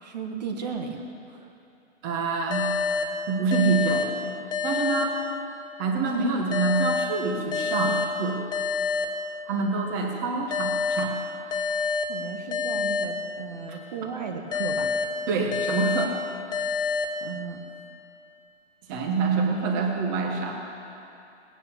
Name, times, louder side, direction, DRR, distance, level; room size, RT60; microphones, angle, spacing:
voice 1, 0.0-1.0 1.3-1.5 12.1-14.9 17.2-17.6, right 6 dB, 35° right, 3 dB, 1.3 m, -35 dB
voice 2, 2.0-2.6 3.3-4.1 4.6-5.2 5.8-8.4 9.5-11.1 13.7-13.8 15.3-16.2 18.9-20.6, right 4 dB, 15° right, 2 dB, 1.3 m, -26 dB
sound 1, 2.5-5.8 6.5-9.8 10.5-13.8 14.5-17.8, left 5 dB, 75° left, 1.6 m, -29 dB
19.0 x 9.8 x 7.2 m, 2.7 s
hypercardioid pair, 165°, 37 cm